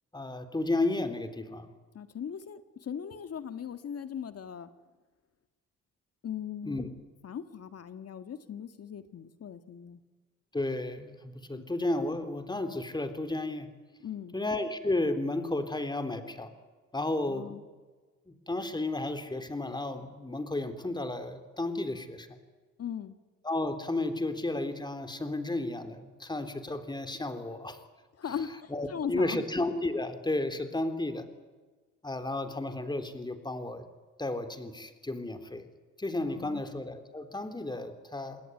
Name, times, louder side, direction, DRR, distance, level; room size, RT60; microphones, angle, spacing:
voice 1, 0.1-1.7 6.6-6.9 10.5-13.7 14.3-16.5 16.9-17.6 18.3-22.4 23.4-27.8 28.3-28.4 28.7-31.3 32.0-33.8 34.2-35.7 36.0-38.4, left 2 dB, 15° left, 8 dB, 3.6 m, -33 dB
voice 2, 1.9-4.7 6.2-6.9 7.2-10.0 11.5-11.6 14.0-14.4 17.3-17.6 22.8-23.2 28.2-29.4 36.2-36.6, left 8 dB, 55° left, 10 dB, 1.8 m, -39 dB
28.0 x 20.5 x 9.8 m, 1.3 s
cardioid pair, 90°, 30 cm